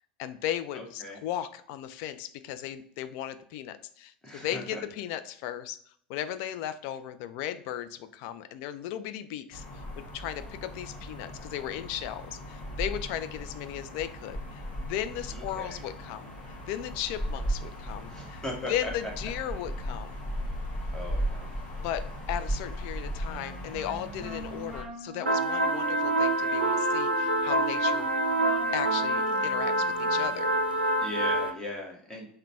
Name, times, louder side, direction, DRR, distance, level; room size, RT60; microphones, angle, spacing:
voice 1, 0.2-5.8 6.1-16.3 16.7-18.4 18.7-20.2 21.8-28.1 28.7-31.0, left 11 dB, 50° left, 11 dB, 0.3 m, -36 dB
voice 2, 0.7-1.2 4.2-4.8 15.3-15.8 18.1-18.7 20.9-21.6 31.0-32.3, left 1 dB, 10° left, -1 dB, 1.2 m, -39 dB
sound 1, 9.5-24.8, equal, 30° left, 1.6 m, -37 dB
Wind instrument woodwind instrument, 23.2-30.6, right 3 dB, 15° right, 0.6 m, -39 dB
sound 2, 25.3-31.5, right 1 dB, 85° right, 0.5 m, -26 dB
3.9 x 2.2 x 4.2 m, 0.64 s
figure-of-eight pair, 80°, 5 cm